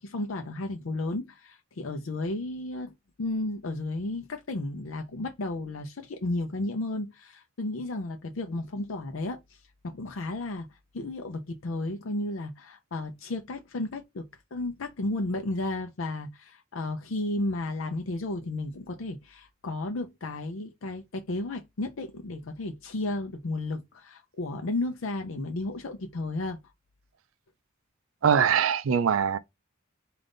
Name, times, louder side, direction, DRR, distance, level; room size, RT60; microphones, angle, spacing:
voice 1, 0.0-9.6 9.8-10.7 10.9-26.6, left 2 dB, 80° left, 0.6 m, -33 dB
voice 2, 28.2-29.4, right 7 dB, 85° right, 0.4 m, -22 dB
3.8 x 2.5 x 3.5 m
head